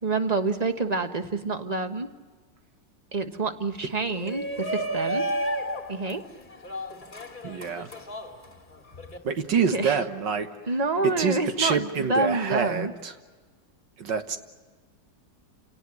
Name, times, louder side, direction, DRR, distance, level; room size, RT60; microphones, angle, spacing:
voice 1, 0.0-2.1 3.1-5.3 5.9-6.2 9.5-10.0 10.7-12.9, right 3 dB, 25° right, 8 dB, 1.1 m, -27 dB
Shout, 4.1-9.2, right 1 dB, 25° left, 2.5 m, -32 dB
voice 2, 7.4-7.9 9.2-10.7 11.0-13.2 14.0-14.4, right 6 dB, 70° right, 8 dB, 1.9 m, -27 dB
29.0 x 18.5 x 9.6 m, 1.3 s
omnidirectional pair, 2.0 m